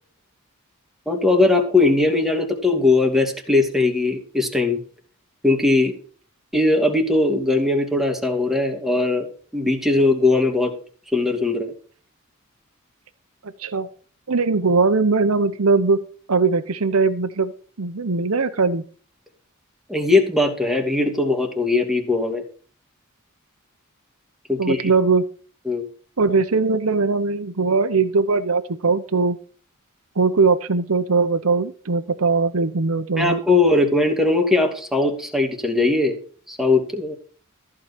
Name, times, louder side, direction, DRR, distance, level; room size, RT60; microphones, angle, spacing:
voice 1, 1.1-4.8 5.4-6.0 6.5-9.3 9.5-10.7 11.1-11.7 19.9-22.4 24.5-24.9 25.7-25.9 33.2-36.2 36.5-37.1, left 2 dB, ahead, 3 dB, 2.3 m, -19 dB
voice 2, 13.4-13.9 14.3-16.0 16.3-17.5 17.8-18.8 24.6-25.2 26.2-29.4 30.2-33.4, right 4 dB, 75° right, 9 dB, 0.9 m, -20 dB
14.5 x 4.9 x 8.3 m, 0.42 s
head